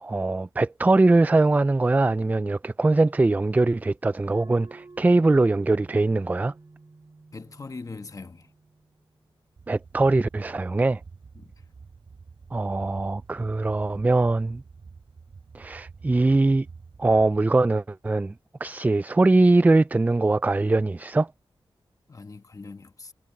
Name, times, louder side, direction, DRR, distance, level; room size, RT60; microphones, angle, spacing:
voice 1, 0.0-6.5 9.7-11.0 12.5-14.6 15.5-16.7 17.0-18.3 18.6-21.3, right 2 dB, 20° right, 0.3 m, -21 dB
sound 1, 4.3-9.4, right 3 dB, 40° right, 3.9 m, -50 dB
voice 2, 7.3-8.5 11.3-11.6 22.1-23.1, left 3 dB, 40° left, 1.2 m, -41 dB
sound 2, 9.6-17.4, right 5 dB, 65° right, 6.0 m, -48 dB
wide cardioid pair, 90°, 9 cm